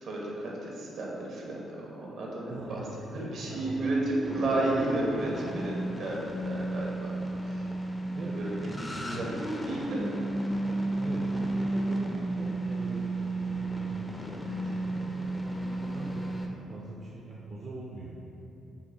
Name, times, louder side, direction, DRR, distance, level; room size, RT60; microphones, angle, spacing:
voice 1, 0.0-2.8 3.1-5.7 6.0-6.2 6.4-7.1 7.4-7.6 8.3-9.3 9.7-10.0 14.4-14.6, right 2 dB, 70° right, -3 dB, 0.9 m, -32 dB
voice 2, 2.5-4.0 8.1-8.4 9.0-9.2 11.0-13.1 13.4-16.4 16.7-18.2, right 2 dB, 50° right, -5 dB, 0.5 m, -41 dB
sound 1, 2.7-16.5, right 1 dB, 15° left, 0.4 m, -33 dB
5.6 x 2.1 x 3.6 m, 3.0 s
cardioid pair, 90°, 0 cm